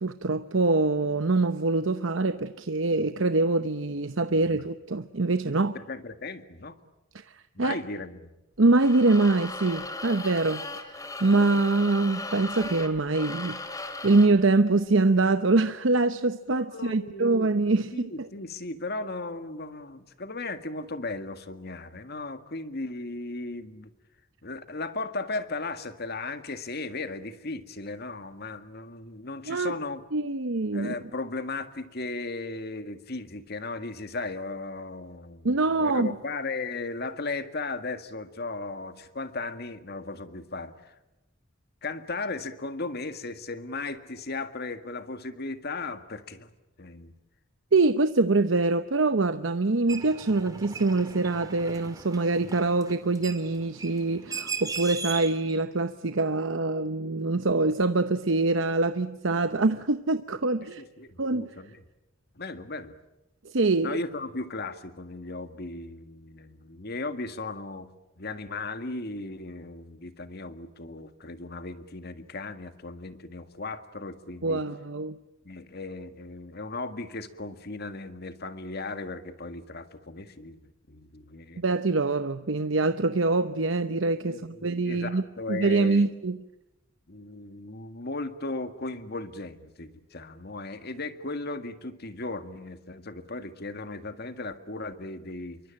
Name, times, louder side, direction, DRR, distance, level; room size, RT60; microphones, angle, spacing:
voice 1, 0.0-5.7 7.3-7.8 8.6-18.3 29.5-29.7 30.1-30.9 35.4-36.1 47.7-60.8 61.2-61.5 63.4-64.0 74.4-75.2 81.6-85.2 85.5-86.4, right 3 dB, 70° right, 0.9 m, -24 dB
voice 2, 4.3-4.7 5.9-6.8 7.5-8.3 16.5-17.5 17.9-23.9 24.4-30.0 30.7-40.9 41.8-46.5 46.8-47.1 52.4-52.5 60.8-61.8 62.4-62.9 63.8-67.9 68.2-74.6 75.4-81.6 84.2-86.1 87.1-95.6, left 3 dB, 55° left, 1.9 m, -36 dB
sound 1, 8.6-14.4, left 2 dB, 20° left, 2.5 m, -37 dB
sound 2, 49.9-55.6, right 5 dB, 20° right, 2.5 m, -38 dB
28.5 x 24.0 x 8.8 m
head